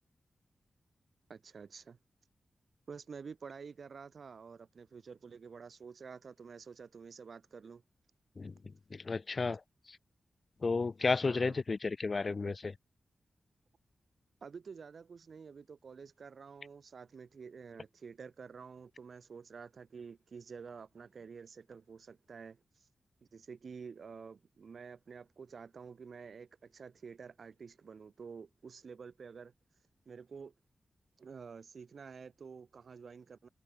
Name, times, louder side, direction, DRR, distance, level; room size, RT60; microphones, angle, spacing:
voice 1, 1.3-2.0 2.9-7.8 11.2-11.6 14.4-22.6 23.3-29.5 30.1-30.5 31.2-33.5, right 5 dB, 70° right, 7.4 m, -49 dB
voice 2, 9.1-9.6 10.6-12.7, left 4 dB, 50° left, 0.8 m, -32 dB
cardioid pair, 50°, 0 cm